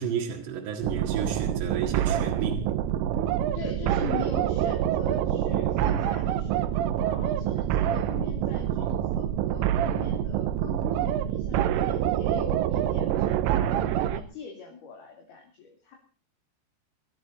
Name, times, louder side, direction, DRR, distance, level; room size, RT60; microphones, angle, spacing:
voice 1, 0.0-2.6, right 7 dB, 65° right, 3.7 m, -31 dB
sound 1, 0.8-14.2, right 11 dB, 80° right, 3.5 m, -26 dB
voice 2, 3.5-16.0, left 6 dB, 50° left, 4.5 m, -42 dB
24.5 x 12.5 x 4.2 m
omnidirectional pair, 6.0 m